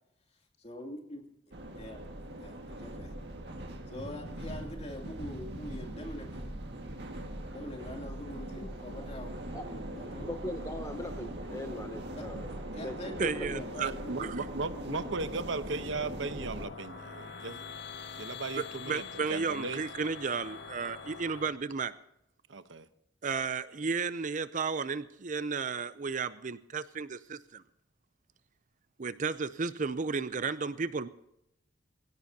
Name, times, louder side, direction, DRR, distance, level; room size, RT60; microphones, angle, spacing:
voice 1, 0.6-1.2 1.8-2.0 2.4-3.1 3.9-6.4 7.5-10.3 12.2-12.3 12.7-15.2, left 1 dB, 35° left, 2 dB, 2.8 m, -44 dB
sound 1, 1.5-16.7, right 1 dB, 60° right, 1.9 m, -41 dB
voice 2, 9.9-12.5 12.8-13.6, left 1 dB, 15° left, 6 dB, 0.8 m, -41 dB
voice 3, 13.2-13.9 14.2-14.4 18.6-21.9 23.2-27.6 29.0-31.1, right 5 dB, 40° right, 14 dB, 0.5 m, -33 dB
voice 4, 13.8-17.7 18.1-19.8 22.5-22.9, right 3 dB, 75° right, 11 dB, 0.9 m, -37 dB
sound 2, 15.8-21.5, left 5 dB, 60° left, 1.8 m, -45 dB
21.5 x 17.0 x 2.8 m, 0.82 s
head